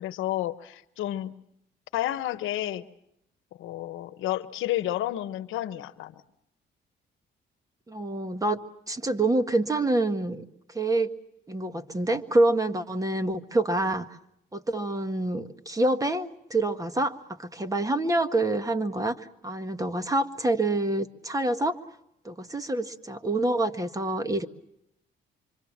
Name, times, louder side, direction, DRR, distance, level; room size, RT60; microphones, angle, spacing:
voice 1, 0.0-1.3 1.9-2.8 3.6-6.1, left 14 dB, 90° left, 13 dB, 1.1 m, -31 dB
voice 2, 7.9-8.6 8.9-11.1 11.5-14.1 14.5-21.8 22.3-24.5, right 2 dB, 15° right, 8 dB, 1.7 m, -27 dB
26.5 x 25.0 x 7.3 m, 0.78 s
cardioid pair, 90°, 20 cm